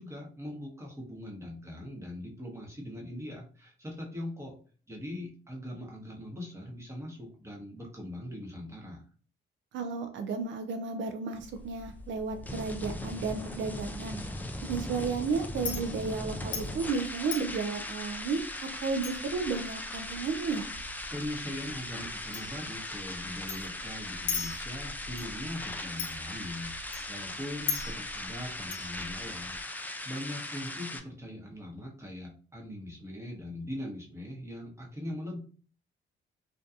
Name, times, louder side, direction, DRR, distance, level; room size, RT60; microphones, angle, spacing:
voice 1, 0.0-4.5 4.9-9.0 21.1-26.7 27.1-35.4, left 1 dB, 15° right, -1 dB, 0.9 m, -41 dB
voice 2, 9.7-14.2 14.7-20.6, right 4 dB, 70° right, 7 dB, 0.4 m, -33 dB
sound 1, 11.3-31.0, left 1 dB, 10° left, 0.3 m, -39 dB
Chink clink, 11.4-29.6, left 5 dB, 65° left, 0.6 m, -42 dB
2.6 x 2.2 x 2.4 m, 0.42 s
cardioid pair, 90°, 20 cm